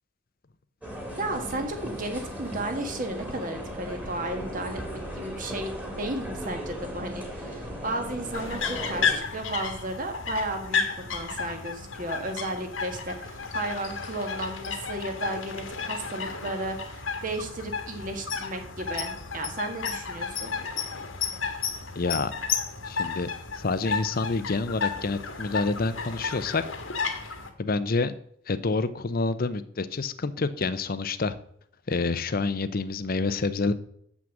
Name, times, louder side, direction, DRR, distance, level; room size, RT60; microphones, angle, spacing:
sound 1, 0.8-9.2, equal, 10° right, 2.1 m, -37 dB
voice 1, 1.2-10.8 11.1-20.5, right 2 dB, 40° right, 5 dB, 1.6 m, -34 dB
sound 2, 8.3-27.5, left 5 dB, 80° left, 1.5 m, -33 dB
voice 2, 22.0-22.3 22.8-26.6 27.6-28.1 28.5-31.4 31.9-33.7, left 3 dB, 45° left, 13 dB, 0.6 m, -28 dB
7.5 x 6.2 x 7.2 m, 0.70 s
head